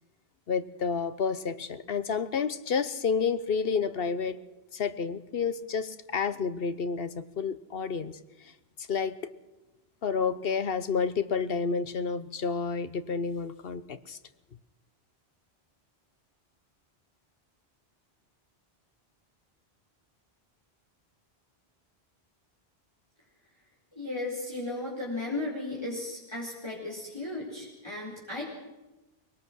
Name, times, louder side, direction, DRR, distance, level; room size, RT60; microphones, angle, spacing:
voice 1, 0.5-4.4 4.7-8.2 8.8-9.2 10.0-14.2, left 5 dB, 65° left, 13 dB, 1.1 m, -30 dB
voice 2, 23.9-28.5, left 2 dB, 25° left, -5 dB, 4.8 m, -35 dB
24.5 x 20.0 x 6.3 m, 1.0 s
omnidirectional pair, 1.1 m